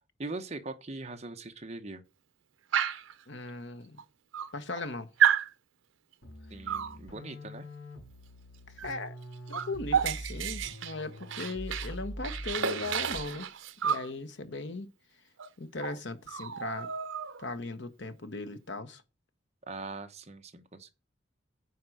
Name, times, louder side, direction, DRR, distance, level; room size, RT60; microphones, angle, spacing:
voice 1, 0.2-2.0 6.5-7.7 19.7-20.9, right 2 dB, 35° right, 1.0 m, -41 dB
Dog, 2.7-3.1 4.0-4.1 4.3-4.9 5.2-5.5 6.7-7.0 8.8-9.0 9.2-11.9 12.2-14.1 15.4-15.5 15.8-16.0 16.3-17.5, right 8 dB, 75° right, 0.8 m, -30 dB
voice 2, 3.3-4.0 4.5-5.1 8.8-9.2 9.5-13.5 13.8-14.9 15.6-16.9 17.4-19.0, left 3 dB, 60° left, 1.1 m, -38 dB
sound 1, 6.2-13.4, equal, 85° left, 4.9 m, -44 dB
9.5 x 4.6 x 7.7 m
head